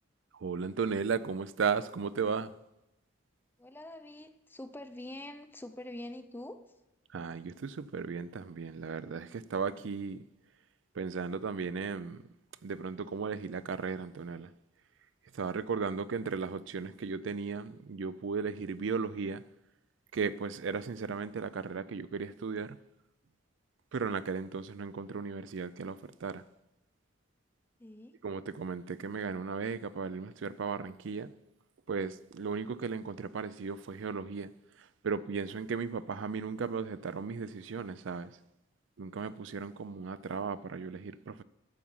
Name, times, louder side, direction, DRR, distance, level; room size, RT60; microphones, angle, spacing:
voice 1, 0.4-2.5 7.1-10.2 11.0-12.2 12.6-14.5 15.3-19.4 20.1-22.8 23.9-26.4 28.2-31.3 31.9-34.5 35.0-38.3 39.0-41.4, right 5 dB, 70° right, 0.4 m, -35 dB
voice 2, 3.6-6.6 27.8-28.2, left 1 dB, 10° left, 0.5 m, -45 dB
12.5 x 7.1 x 5.5 m
head